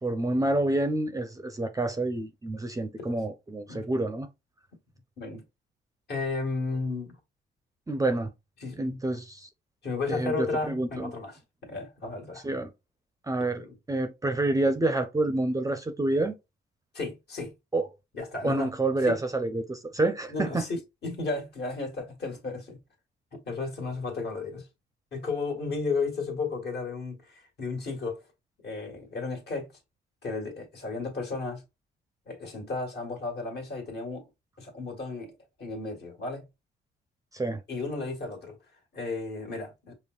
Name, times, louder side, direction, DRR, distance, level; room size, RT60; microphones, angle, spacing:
voice 1, 0.0-4.3 7.9-8.3 8.8-9.5 10.1-11.1 12.4-12.7 13.3-16.3 17.7-17.9 18.4-20.6 37.3-37.6, right 2 dB, 15° right, 0.5 m, -28 dB
voice 2, 6.1-7.2 8.6-9.0 9.8-12.4 13.5-13.8 16.9-17.5 18.1-18.7 19.0-19.2 20.3-20.8 21.0-22.8 23.3-24.7 25.1-28.2 28.6-29.7 30.2-31.6 32.3-34.2 34.6-35.3 35.6-36.4 37.7-38.6 38.9-39.9, left 3 dB, 55° left, 1.6 m, -33 dB
5.2 x 2.1 x 2.3 m
cardioid pair, 90°, 20 cm